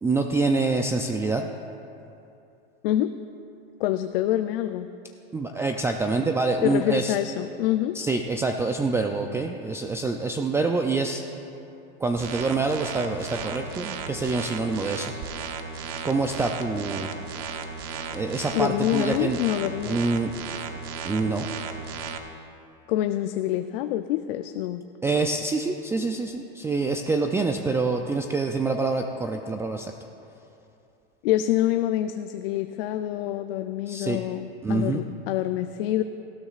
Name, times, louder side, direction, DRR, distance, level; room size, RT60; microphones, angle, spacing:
voice 1, 0.0-1.5 5.3-7.2 7.9-11.2 12.0-15.1 16.0-17.1 18.1-19.4 19.8-20.3 21.1-21.5 25.0-29.9 33.9-34.2 34.6-35.0, right 3 dB, 10° right, 4 dB, 0.3 m, -26 dB
voice 2, 2.8-3.1 3.8-4.9 6.6-8.0 18.5-20.0 22.9-24.8 31.2-36.0, left 13 dB, 70° left, 9 dB, 0.5 m, -26 dB
sound 1, 12.2-22.2, right 5 dB, 65° right, 1.1 m, -35 dB
18.5 x 13.0 x 2.4 m, 2.7 s
supercardioid pair, 130°, 30 cm